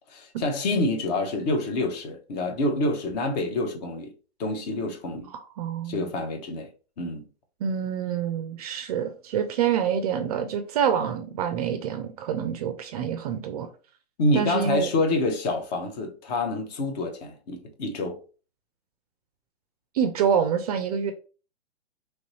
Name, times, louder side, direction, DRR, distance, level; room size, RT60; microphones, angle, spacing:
voice 1, 0.1-4.1 4.4-5.3 5.9-6.7 7.0-7.3 14.2-18.2, left 2 dB, 40° left, 0.8 m, -27 dB
voice 2, 5.3-6.1 7.6-13.7 14.3-14.9 19.9-21.1, right 8 dB, 35° right, 0.4 m, -27 dB
3.1 x 2.6 x 3.0 m
hypercardioid pair, 125°, 33 cm